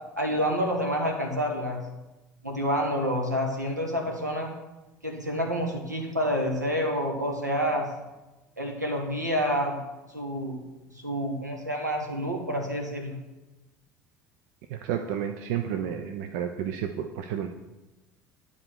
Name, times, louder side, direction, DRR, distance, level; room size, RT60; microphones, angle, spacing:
voice 1, 0.2-1.8 2.4-4.5 5.0-7.9 8.6-9.8 10.1-10.6 11.0-13.2, equal, 85° right, 1 dB, 1.3 m, -28 dB
voice 2, 14.7-17.5, right 9 dB, 55° right, 7 dB, 0.5 m, -31 dB
9.9 x 4.0 x 6.3 m, 1.1 s
figure-of-eight pair, 65°, 9 cm